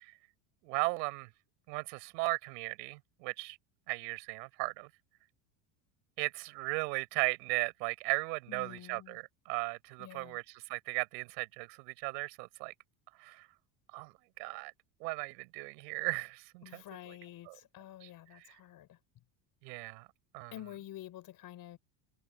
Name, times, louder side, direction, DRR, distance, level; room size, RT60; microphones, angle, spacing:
voice 1, 0.6-1.3 1.7-3.6 3.9-4.9 6.2-9.2 9.5-10.4 10.7-12.7 13.2-13.4 13.9-14.1 14.4-14.7 15.0-16.8 17.5-17.6 19.6-20.1 20.3-20.5, right 28 dB, 85° right, 4.9 m, -36 dB
voice 2, 8.5-9.2 10.0-10.4 16.6-19.0 20.5-21.8, left 13 dB, 45° left, 4.9 m, -49 dB
cardioid pair, 140°, 48 cm